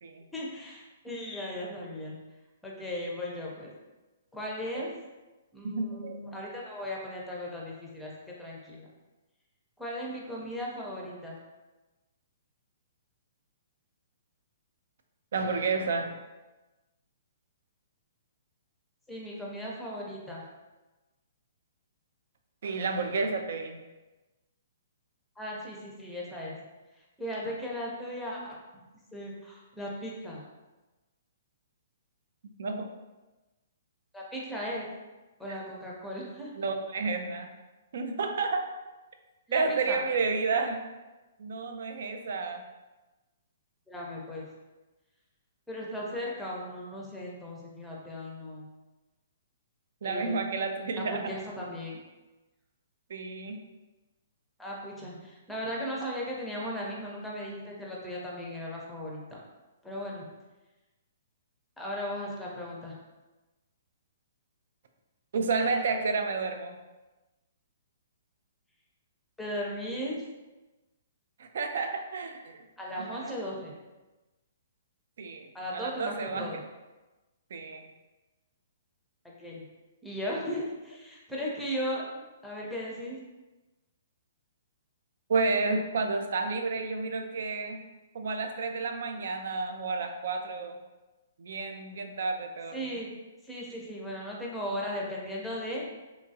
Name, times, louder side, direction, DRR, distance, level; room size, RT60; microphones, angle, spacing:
voice 1, 0.3-2.2 2.6-3.7 4.3-4.9 5.5-8.9 9.8-11.4 19.1-20.4 25.4-26.6 27.2-28.5 29.1-30.4 34.1-34.9 35.4-36.5 39.5-40.0 43.9-44.5 45.7-48.7 50.0-50.4 51.0-52.0 54.6-59.2 59.8-60.2 61.8-63.0 69.4-70.2 72.8-73.7 75.5-76.6 79.4-79.6 80.0-82.1 82.4-83.2 92.7-93.1 93.4-95.8, equal, 5° left, -4 dB, 0.6 m, -37 dB
voice 2, 5.6-6.2 15.3-16.2 22.6-23.8 32.6-32.9 36.6-37.5 37.9-38.7 39.5-40.8 41.4-42.6 50.0-51.3 53.1-53.6 65.3-66.8 71.4-72.6 72.9-73.3 75.2-76.5 77.5-77.8 85.3-87.8 88.1-90.8 91.4-93.0, right 4 dB, 65° right, 5 dB, 0.4 m, -31 dB
3.0 x 2.3 x 2.6 m, 1.1 s
hypercardioid pair, 135°, 0 cm